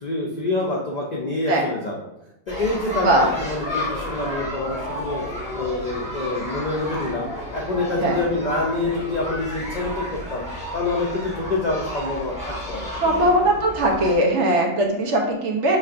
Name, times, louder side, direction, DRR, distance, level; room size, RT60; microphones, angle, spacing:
voice 1, 0.0-2.0 2.5-5.2 5.5-7.3 7.5-10.4 10.7-13.4, left 2 dB, 70° left, -2 dB, 0.4 m, -26 dB
sound 1, 2.5-14.2, left 1 dB, 5° right, 1.0 m, -32 dB
voice 2, 13.0-15.8, right 1 dB, 60° right, 0 dB, 1.0 m, -19 dB
5.4 x 3.1 x 2.5 m, 0.89 s
omnidirectional pair, 1.5 m